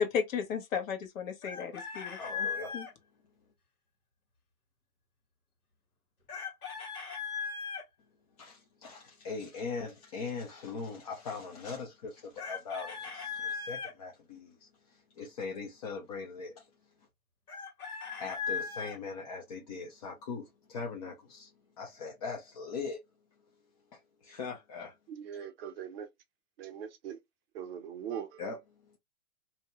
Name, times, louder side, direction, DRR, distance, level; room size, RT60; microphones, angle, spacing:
voice 1, 0.0-2.5 2.7-2.9, left 7 dB, 65° left, 1.1 m, -33 dB
Chicken rooster, 1.4-2.9 6.3-7.8 12.4-13.9 17.5-19.0, left 6 dB, 85° left, 1.5 m, -38 dB
voice 2, 2.2-2.7 8.4-16.7 18.2-23.0 23.9-24.9 25.3-25.5 28.4-29.0, left 4 dB, 30° left, 0.4 m, -41 dB
voice 3, 25.1-26.1 26.6-27.2 27.5-28.4, right 8 dB, 45° right, 0.6 m, -41 dB
2.7 x 2.1 x 2.9 m
hypercardioid pair, 135°, 44 cm